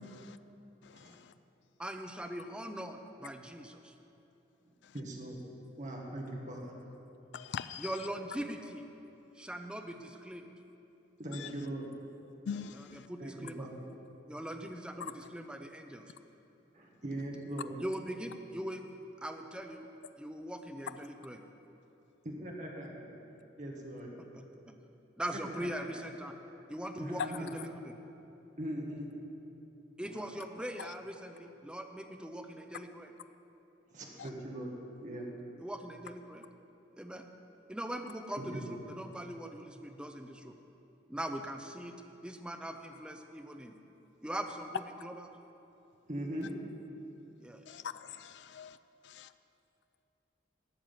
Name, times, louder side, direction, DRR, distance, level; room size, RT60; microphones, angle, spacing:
voice 1, 1.8-3.9 7.8-8.8 9.3-10.5 12.7-13.7 14.3-16.0 17.8-18.8 19.2-19.9 20.2-21.4 24.2-24.8 25.2-26.3 26.7-27.9 30.0-33.2 35.6-36.5 37.0-37.3 37.7-40.5 41.1-41.9 42.2-43.8 44.2-45.3 47.4-47.6, right 1 dB, 5° right, 5 dB, 0.6 m, -41 dB
voice 2, 4.9-5.4 5.8-6.7 11.2-11.9 13.2-13.8 16.7-17.8 22.2-23.1 23.6-24.1 25.8-25.9 27.0-27.5 28.6-29.1 30.0-30.3 33.9-34.7 35.0-35.3 38.4-38.8 46.1-46.5, right 1 dB, 40° right, -1 dB, 1.5 m, -40 dB
voice 3, 7.3-7.9 12.5-13.0 47.7-48.8 49.2-49.3, left 7 dB, 65° left, 13 dB, 0.3 m, -41 dB
13.0 x 6.1 x 9.1 m, 2.9 s
head